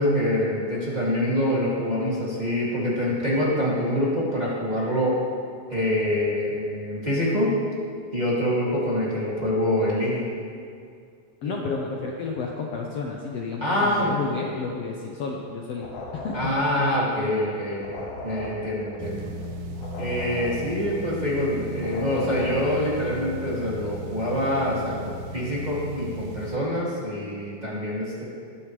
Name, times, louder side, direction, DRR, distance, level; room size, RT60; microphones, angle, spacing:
voice 1, 0.0-5.2 5.7-7.5 8.1-10.3 11.4-11.8 13.6-14.2 16.3-19.3 20.0-28.2, left 1 dB, 15° right, -8 dB, 1.9 m, -25 dB
voice 2, 11.4-15.9 16.1-16.5, left 4 dB, 90° left, -1 dB, 1.4 m, -31 dB
sound 1, 15.7-23.1, left 2 dB, 70° left, 2.9 m, -39 dB
sound 2, 19.0-26.6, equal, 80° right, 2.4 m, -36 dB
20.5 x 9.4 x 3.3 m, 2.2 s
omnidirectional pair, 4.1 m